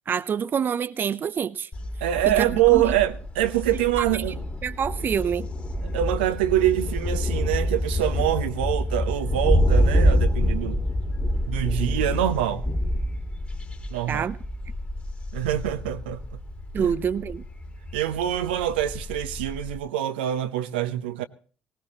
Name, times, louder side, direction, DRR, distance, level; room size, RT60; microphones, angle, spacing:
voice 1, 0.1-1.7 2.3-2.8 4.6-5.5 14.1-14.4 16.7-17.4, right 7 dB, 40° right, 0.7 m, -26 dB
Thunder, 1.7-19.8, equal, 25° left, 2.4 m, -27 dB
voice 2, 2.0-4.4 5.8-10.8 11.5-12.6 13.9-14.3 15.3-16.2 16.8-16.9 17.9-21.2, right 12 dB, 75° right, 0.8 m, -25 dB
19.0 x 18.5 x 3.0 m
figure-of-eight pair, 50°, 5 cm